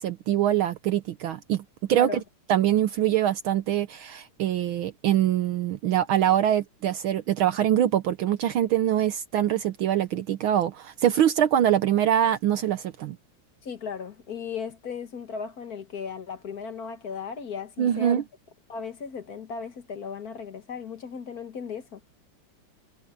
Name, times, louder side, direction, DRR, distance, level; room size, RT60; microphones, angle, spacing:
voice 1, 0.0-1.6 1.9-2.2 2.5-13.2 17.8-18.2, right 11 dB, 70° right, 1.6 m, -24 dB
voice 2, 13.6-18.2 18.7-22.0, left 6 dB, 45° left, 1.7 m, -36 dB
omnidirectional pair, 2.4 m